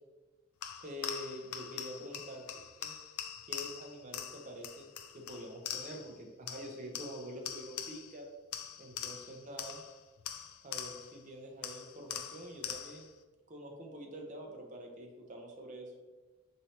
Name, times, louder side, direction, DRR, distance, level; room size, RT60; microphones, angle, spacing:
sound 1, 0.6-6.2 6.5-8.2 8.5-11.2 11.6-13.1, left 9 dB, 85° left, 0.3 m, -43 dB
voice 1, 0.8-2.4 2.8-2.9 3.5-4.9 5.1-8.3 8.8-9.8 10.6-13.1 13.5-15.9, equal, 35° right, 1 dB, 0.6 m, -46 dB
4.4 x 3.2 x 2.8 m, 1.2 s
head